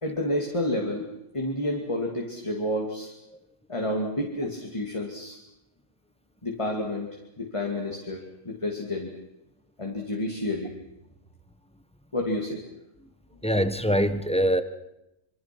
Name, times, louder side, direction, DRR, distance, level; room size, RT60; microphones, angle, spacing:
voice 1, 0.0-1.1 1.3-3.1 3.7-5.4 6.4-9.1 9.8-10.7 12.1-12.6, left 1 dB, 25° left, 1 dB, 2.6 m, -30 dB
voice 2, 13.4-14.6, equal, 5° left, 10 dB, 1.1 m, -23 dB
26.0 x 24.5 x 6.1 m, 0.87 s
omnidirectional pair, 1.2 m